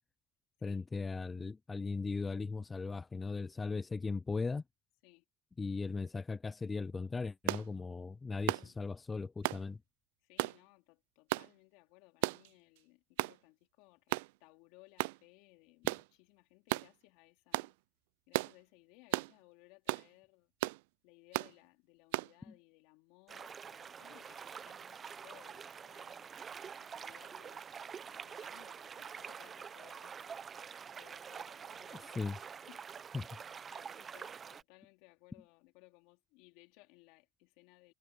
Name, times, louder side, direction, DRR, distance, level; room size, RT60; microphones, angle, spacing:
voice 1, 0.6-4.6 5.6-9.8 22.5-22.6 31.9-32.4 33.1-33.3, left 4 dB, 20° left, 0.5 m, -38 dB
sound 1, 7.5-7.7 8.5-8.7 9.4-9.6 10.4-10.6 11.3-11.5 12.2-12.5 13.2-13.4 14.1-14.3 15.0-15.2 15.9-16.1 16.7-16.9 17.5-17.7 18.3-18.5 19.1-19.3 19.9-20.1 20.6-20.8 21.3-21.5 22.1-22.3, right 23 dB, 80° right, 0.3 m, -34 dB
voice 2, 10.2-17.8 18.3-20.5 21.0-26.3 26.8-30.5 31.0-32.4 32.7-32.8 33.2-33.4 33.7-37.9, left 24 dB, 75° left, 3.7 m, -63 dB
sound 2, 23.3-34.6, right 7 dB, 35° right, 0.8 m, -47 dB
supercardioid pair, 95°, 0 cm